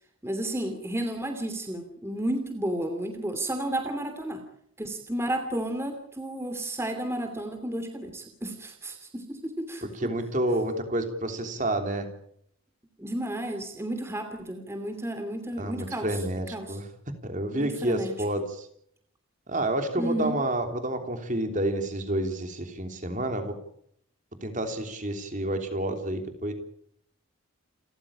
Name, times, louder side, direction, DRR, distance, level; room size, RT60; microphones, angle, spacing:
voice 1, 0.2-4.4 4.8-10.1 13.0-16.2 16.5-16.8 17.5-18.4 20.0-20.4, right 1 dB, 10° right, 7 dB, 2.8 m, -32 dB
voice 2, 9.9-12.1 15.6-16.8 17.2-18.7 19.5-23.6 24.4-26.5, right 1 dB, 35° right, 6 dB, 3.4 m, -29 dB
29.0 x 14.5 x 8.7 m, 0.70 s
head